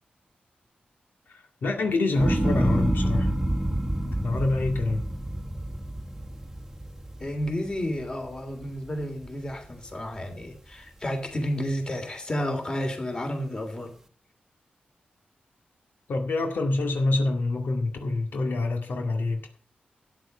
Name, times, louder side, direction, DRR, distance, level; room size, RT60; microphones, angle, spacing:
voice 1, 1.6-3.3 4.0-5.1 16.1-19.5, left 2 dB, 80° left, 3 dB, 2.1 m, -26 dB
sound 1, 2.2-8.5 8.9-9.5, right 1 dB, 15° right, 1.1 m, -28 dB
voice 2, 7.2-13.9, equal, 25° left, 4 dB, 3.3 m, -31 dB
13.0 x 9.7 x 5.6 m, 0.42 s
wide cardioid pair, 145°, 3 cm